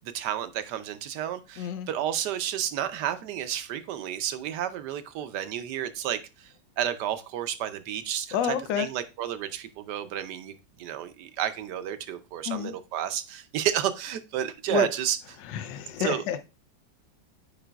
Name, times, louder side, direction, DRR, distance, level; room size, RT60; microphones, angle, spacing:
voice 1, 0.0-15.2 16.0-16.2, right 10 dB, 75° right, 1.2 m, -31 dB
voice 2, 1.6-1.9 8.3-8.9 12.5-12.7 14.7-14.9 15.4-16.4, left 8 dB, 85° left, 1.3 m, -29 dB
8.9 x 4.7 x 2.3 m
omnidirectional pair, 1.9 m